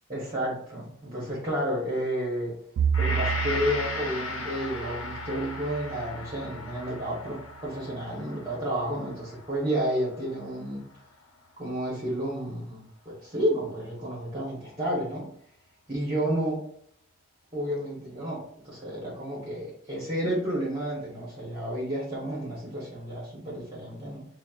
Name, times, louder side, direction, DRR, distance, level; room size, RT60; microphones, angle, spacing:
voice 1, 0.1-2.5 3.0-10.8 11.6-15.3 15.9-16.6 17.5-24.3, equal, 25° right, -5 dB, 1.1 m, -31 dB
Bowed string instrument, 2.8-7.1, right 7 dB, 80° right, 0.3 m, -32 dB
Gong, 2.9-11.3 11.7-11.8, left 2 dB, 70° left, 0.7 m, -37 dB
5.9 x 2.1 x 2.4 m, 0.65 s
head